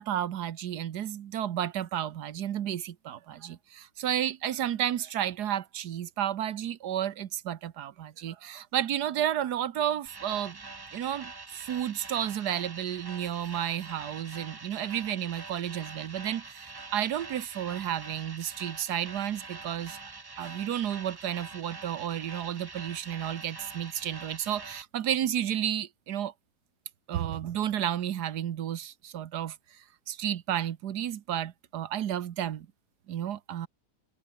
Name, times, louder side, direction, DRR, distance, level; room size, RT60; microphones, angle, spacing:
voice 1, 0.0-10.6 10.9-20.0 20.4-26.3 27.1-32.7 33.1-33.7, right 10 dB, 90° right, 1.6 m, -32 dB
sound 1, 10.1-24.8, right 3 dB, 25° right, 0.6 m, -45 dB
omnidirectional pair, 1.7 m